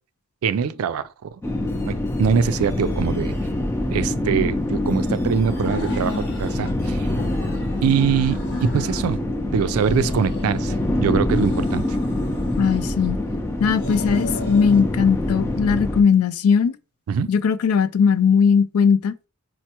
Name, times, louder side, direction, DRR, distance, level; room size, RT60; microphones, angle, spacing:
voice 1, 0.4-1.3 1.9-3.3 3.9-7.0 7.8-9.2 9.5-10.7 11.0-12.0 17.1-17.3, right 7 dB, 75° right, 0.3 m, -23 dB
sound 1, 1.4-16.0, left 1 dB, 10° left, 0.4 m, -25 dB
sound 2, 5.5-6.8 7.1-9.2 9.6-10.9 11.3-13.2 13.7-14.9, left 2 dB, 55° left, 0.8 m, -34 dB
voice 2, 12.6-13.2 13.6-16.8 17.3-19.1, left 6 dB, 85° left, 0.3 m, -18 dB
4.4 x 2.1 x 2.8 m
head